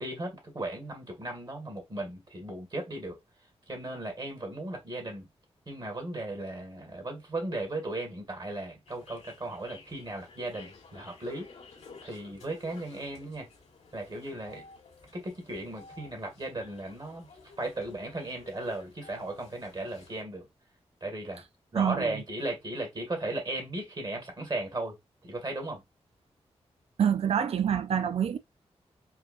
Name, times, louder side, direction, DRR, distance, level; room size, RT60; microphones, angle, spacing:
voice 1, 0.0-3.2 3.7-5.3 5.7-11.5 12.0-13.5 13.9-14.6 15.1-17.3 17.6-20.5 21.0-21.4 21.7-25.0 25.2-25.8, right 2 dB, 40° right, 2.1 m, -36 dB
sound 1, 8.9-20.2, left 4 dB, 80° left, 1.7 m, -53 dB
voice 2, 21.7-22.1 27.0-28.4, right 8 dB, 60° right, 0.4 m, -26 dB
4.7 x 2.4 x 2.6 m
cardioid pair, 60°, 11 cm